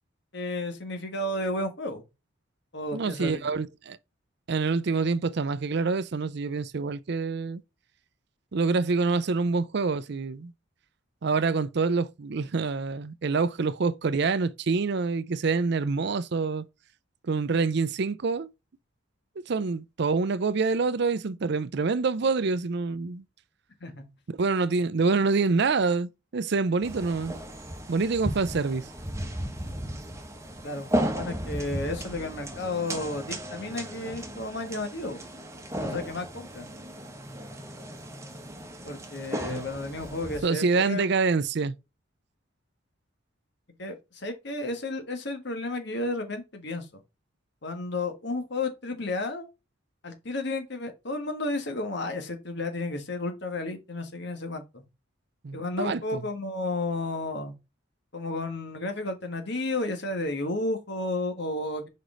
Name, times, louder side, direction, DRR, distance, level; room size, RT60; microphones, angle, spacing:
voice 1, 0.3-2.0 2.7-3.5 23.8-24.0 30.6-35.2 35.8-36.7 38.8-41.1 43.8-46.9 47.6-49.5 50.0-54.8 55.5-57.5 58.1-61.9, left 2 dB, 55° left, 1.5 m, -32 dB
voice 2, 2.9-4.0 4.5-7.6 8.5-10.5 11.2-16.6 17.2-18.5 19.4-23.2 24.4-27.3 27.9-28.9 39.4-39.7 40.4-41.8 55.4-56.2, right 4 dB, 55° right, 0.5 m, -26 dB
sound 1, 26.8-40.4, right 1 dB, 15° right, 1.1 m, -35 dB
5.3 x 4.9 x 3.8 m
head